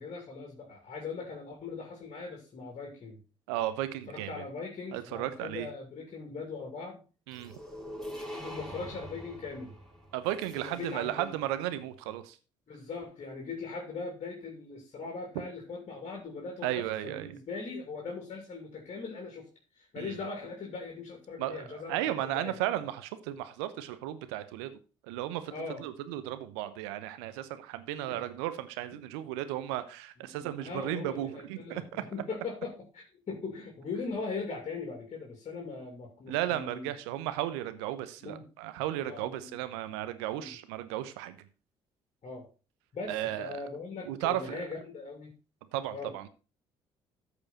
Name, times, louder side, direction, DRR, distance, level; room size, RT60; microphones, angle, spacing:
voice 1, 0.0-3.2 4.1-7.0 8.3-9.7 10.6-11.3 12.7-19.5 19.7-22.5 25.5-25.8 28.0-28.2 30.3-36.9 38.2-38.5 39.0-39.5 40.4-40.6 42.2-42.5 42.9-45.3 45.9-46.1, left 4 dB, 50° left, 1 dB, 2.9 m, -40 dB
voice 2, 3.5-4.4 4.9-5.7 7.3-7.5 10.1-12.4 16.6-17.3 20.0-20.2 21.4-24.7 25.0-25.5 25.8-32.0 36.3-41.5 43.1-43.6 44.1-44.6 45.7-46.3, right 13 dB, 80° right, 12 dB, 0.9 m, -34 dB
sound 1, 7.3-11.3, equal, 5° left, 4.3 m, -44 dB
13.5 x 5.0 x 4.2 m, 0.34 s
hypercardioid pair, 50°, 14 cm